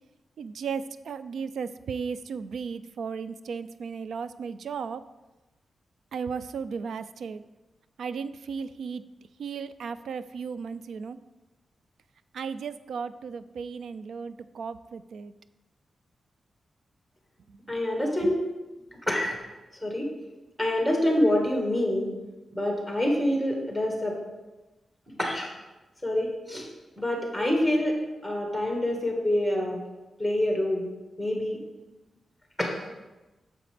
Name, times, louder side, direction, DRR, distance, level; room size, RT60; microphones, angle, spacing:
voice 1, 0.4-5.0 6.1-7.4 8.0-9.0 9.4-11.2 12.3-15.3 17.7-17.8, right 6 dB, 80° right, 13 dB, 0.3 m, -35 dB
voice 2, 17.7-18.4 19.0-19.4 19.8-20.1 20.6-22.1 22.5-24.2 25.2-25.5 26.0-26.7 27.0-29.8 30.2-30.9 31.2-31.6 32.6-32.8, left 1 dB, 5° right, 0 dB, 1.5 m, -26 dB
9.0 x 6.9 x 3.3 m, 1.1 s
wide cardioid pair, 175°, 0 cm